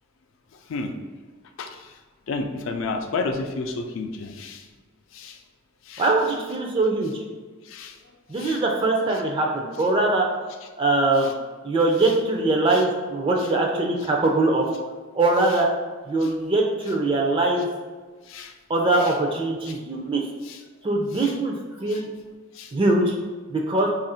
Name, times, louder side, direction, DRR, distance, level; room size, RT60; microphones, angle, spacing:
voice 1, 2.3-4.6 5.1-5.3 5.9-6.1 7.7-7.9 8.4-8.6 12.7-12.8 16.2-16.3 18.3-18.5 19.0-19.1 20.5-20.6 21.1-21.4 21.9-22.0 22.6-22.7, left 3 dB, 65° left, 6 dB, 0.4 m, -31 dB
voice 2, 6.0-7.1 8.3-10.3 10.8-11.3 11.6-14.7 15.1-15.7 16.1-17.7 18.7-20.2 20.8-22.1 22.7-23.1 23.5-23.9, right 2 dB, 25° right, 0 dB, 0.3 m, -22 dB
2.9 x 2.5 x 4.2 m, 1.4 s
head